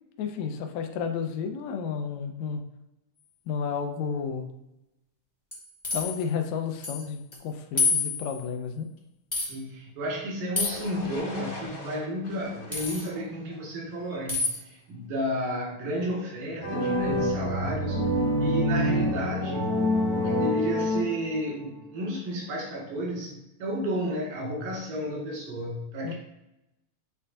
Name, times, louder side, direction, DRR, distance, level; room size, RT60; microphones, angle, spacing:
voice 1, 0.2-2.6 3.5-4.5 5.9-8.9 26.0-26.1, left 6 dB, 80° left, 5 dB, 1.6 m, -31 dB
sound 1, 5.5-6.2 6.8-7.0 7.3-7.4 7.8-8.4 9.3-9.5 10.5-10.9 12.7-13.1 14.3-14.6, left 4 dB, 30° left, 0.4 m, -27 dB
voice 2, 9.4-18.0 18.4-23.3 23.6-26.1, equal, 85° right, -3 dB, 3.6 m, -32 dB
sound 2, 10.6-14.5, left 1 dB, 60° left, 3.1 m, -42 dB
sound 3, 16.6-21.6, left 1 dB, 25° right, 1.3 m, -26 dB
8.4 x 4.4 x 2.6 m, 0.92 s
omnidirectional pair, 3.9 m